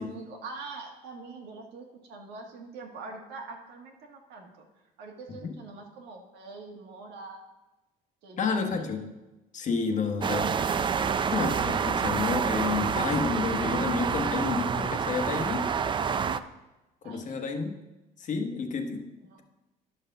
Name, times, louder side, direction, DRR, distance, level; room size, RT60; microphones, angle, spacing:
voice 1, 0.0-4.6 5.0-7.4 8.2-9.2 17.0-17.4 19.2-19.4, right 3 dB, 85° right, 1 dB, 1.7 m, -43 dB
voice 2, 8.4-9.1 9.5-10.6 10.9-15.7 17.0-17.8 18.2-19.1, left 5 dB, 45° left, 5 dB, 1.1 m, -30 dB
sound 1, 10.2-16.4, right 6 dB, 30° right, 0.4 m, -28 dB
10.5 x 4.2 x 6.6 m, 1.1 s
cardioid pair, 110°, 17 cm